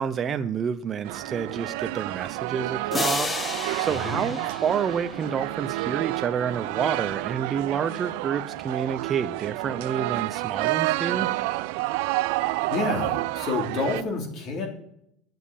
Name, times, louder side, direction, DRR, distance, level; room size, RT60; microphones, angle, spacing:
voice 1, 0.0-3.4 3.8-11.3, right 7 dB, 35° right, 10 dB, 0.6 m, -29 dB
sound 1, 1.0-14.0, right 19 dB, 70° right, 0.4 m, -29 dB
sound 2, 2.9-5.6, left 3 dB, 20° left, 1.0 m, -32 dB
voice 2, 12.4-14.7, left 4 dB, 50° left, 2 dB, 3.2 m, -29 dB
9.3 x 7.3 x 8.5 m, 0.75 s
supercardioid pair, 105°, 0 cm